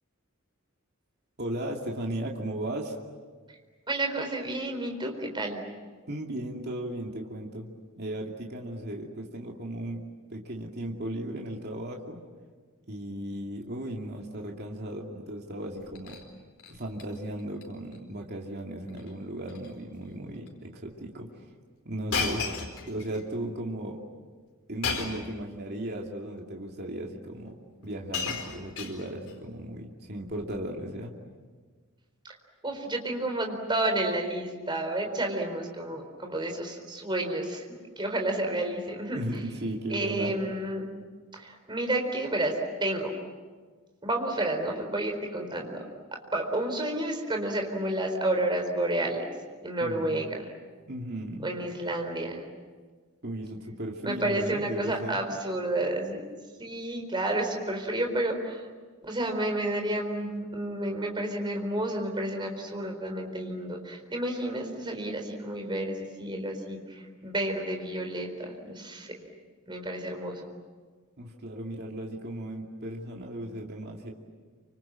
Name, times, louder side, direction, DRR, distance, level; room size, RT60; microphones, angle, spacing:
voice 1, 1.4-3.0 6.1-7.7 7.9-10.0 10.3-12.2 12.9-16.2 16.7-21.3 21.8-22.5 22.9-24.0 24.7-27.5 27.8-31.2 39.1-40.3 49.8-50.3 50.9-51.5 53.2-55.2 71.2-74.1, right 1 dB, 50° right, 0 dB, 2.6 m, -36 dB
voice 2, 3.9-5.6 32.2-32.3 32.6-39.2 39.9-40.9 41.3-43.1 44.0-45.8 46.1-49.3 49.6-50.5 51.4-52.5 54.0-56.2 56.6-58.7 59.0-69.2 69.7-70.5, right 1 dB, 20° right, 3 dB, 4.2 m, -30 dB
Shatter, 15.7-16.2 16.6-17.1 17.4-17.6 17.9-18.0 18.9-19.1 19.4-19.7 20.5-20.6 22.1-23.2 24.8-25.3 26.3-26.4 27.5-27.6 27.8-29.3 30.3-30.6, left 5 dB, 80° left, 4.5 m, -34 dB
28.5 x 26.0 x 7.6 m, 1.5 s
head